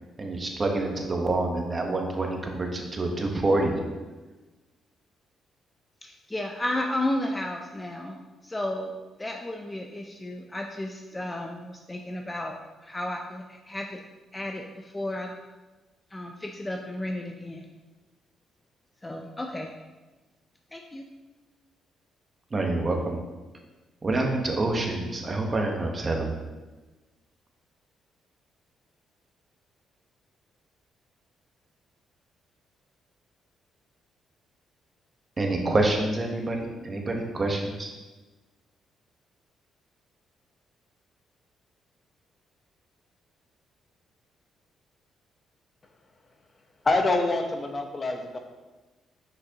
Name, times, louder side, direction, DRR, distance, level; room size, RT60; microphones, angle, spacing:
voice 1, 0.2-3.8 22.5-23.2 24.0-26.4 35.4-37.9, right 2 dB, 30° right, 2 dB, 1.1 m, -27 dB
voice 2, 6.0-8.2 8.4-8.9 9.2-12.6 12.8-14.0 14.3-15.4 16.1-17.6 19.0-19.7 20.7-21.1, left 1 dB, 15° left, 2 dB, 0.5 m, -33 dB
voice 3, 46.8-48.4, left 2 dB, 35° left, 4 dB, 0.9 m, -25 dB
6.1 x 5.9 x 2.9 m, 1.2 s
cardioid pair, 90°, 0 cm